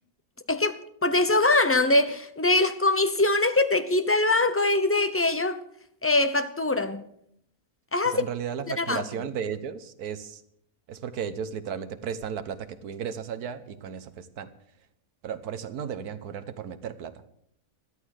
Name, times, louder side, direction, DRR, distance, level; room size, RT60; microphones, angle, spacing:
voice 1, 0.5-5.6 6.0-7.1 7.9-8.2 8.8-9.0, left 2 dB, 15° left, 0.5 m, -23 dB
voice 2, 8.0-10.4 10.9-14.5 15.2-17.2, right 7 dB, 90° right, 1.5 m, -34 dB
13.0 x 12.5 x 6.5 m
omnidirectional pair, 1.6 m